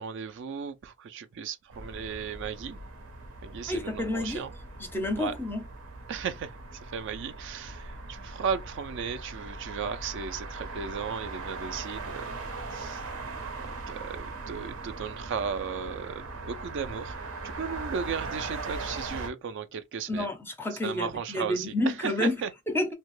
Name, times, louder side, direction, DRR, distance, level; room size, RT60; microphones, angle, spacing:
voice 1, 0.0-2.8 3.4-4.5 5.2-5.3 6.1-6.5 6.9-12.2 12.7-13.0 13.6-17.2 17.4-20.3 20.8-21.7 22.0-22.5, right 6 dB, 60° right, 0.4 m, -35 dB
sound 1, 1.7-19.3, right 3 dB, 85° right, 0.8 m, -39 dB
voice 2, 3.7-4.5 4.8-5.6 20.1-22.4 22.7-22.9, left 1 dB, 10° left, 0.5 m, -29 dB
2.8 x 2.1 x 3.0 m
head